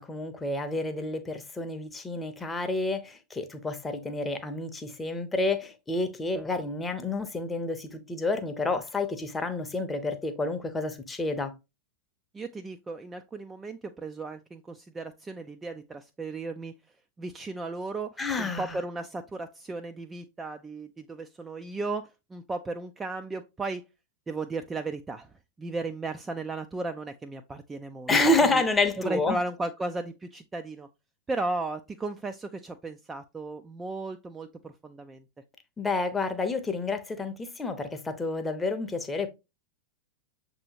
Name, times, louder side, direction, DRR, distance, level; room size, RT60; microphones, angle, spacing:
voice 1, 0.0-11.5 18.2-18.8 28.1-29.4 35.8-39.3, left 2 dB, 15° left, 0.7 m, -29 dB
voice 2, 12.3-16.7 17.2-23.8 24.3-28.1 28.5-28.6 29.0-30.9 31.3-35.2, right 3 dB, 15° right, 0.3 m, -35 dB
6.7 x 2.8 x 2.8 m
figure-of-eight pair, 90°, 0 cm